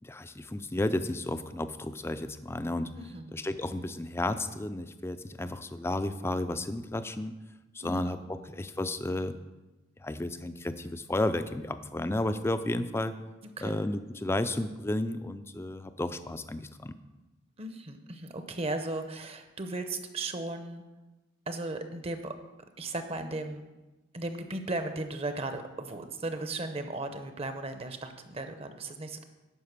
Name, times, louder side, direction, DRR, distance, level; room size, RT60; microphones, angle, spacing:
voice 1, 0.0-2.9 3.3-7.3 7.7-9.4 10.0-13.1 13.6-16.9, left 1 dB, 15° left, 11 dB, 0.4 m, -32 dB
voice 2, 3.0-3.3 7.8-8.4 13.6-13.8 17.6-20.8 21.5-22.4 22.8-23.7 24.1-29.2, right 2 dB, 30° right, 8 dB, 0.7 m, -36 dB
11.0 x 5.0 x 6.6 m, 1.1 s
head